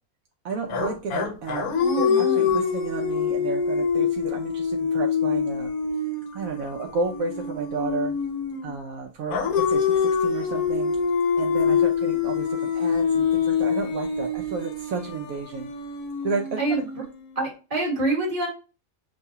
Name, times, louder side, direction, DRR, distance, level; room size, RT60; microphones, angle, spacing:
voice 1, 0.4-5.7 6.3-8.1 8.6-11.0 11.4-15.7 16.2-16.8, right 4 dB, 75° right, 2 dB, 1.0 m, -32 dB
sound 1, 0.7-8.8 9.3-17.4, left 6 dB, 80° left, 1.3 m, -25 dB
voice 2, 1.8-2.6 16.6-17.0 17.3-18.5, right 2 dB, 25° right, -3 dB, 1.6 m, -26 dB
6.4 x 2.3 x 2.7 m, 0.33 s
omnidirectional pair, 1.5 m